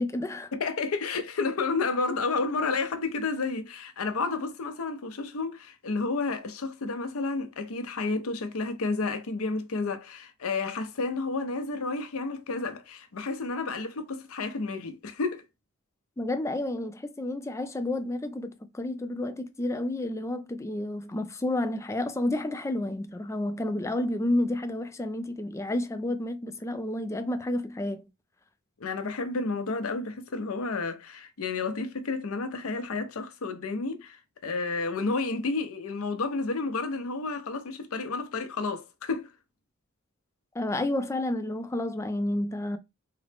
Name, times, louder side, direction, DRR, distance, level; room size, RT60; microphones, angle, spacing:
voice 1, 0.0-0.5 16.2-28.0 40.5-42.8, left 1 dB, 15° left, 0.3 m, -30 dB
voice 2, 0.5-15.4 28.8-39.3, left 3 dB, 90° left, 0.6 m, -31 dB
3.8 x 2.1 x 3.3 m
head